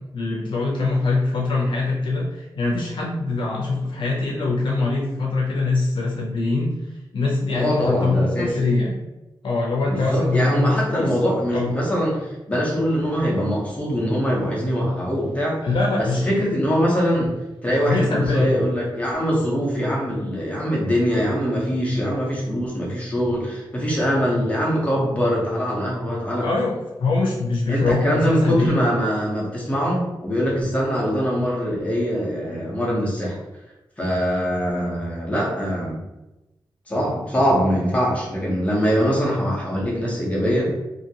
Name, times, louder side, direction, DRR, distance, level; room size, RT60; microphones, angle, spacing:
voice 1, 0.1-9.0 9.4-11.2 11.5-11.7 15.6-16.4 17.8-18.6 26.4-28.8, left 3 dB, 80° left, -2 dB, 0.5 m, -23 dB
voice 2, 7.5-8.5 9.9-15.6 16.0-17.3 17.6-26.5 27.7-33.4 34.0-36.0 36.9-40.7, equal, 15° left, -4 dB, 0.8 m, -23 dB
2.8 x 2.6 x 2.8 m, 1.0 s
wide cardioid pair, 140°, 8 cm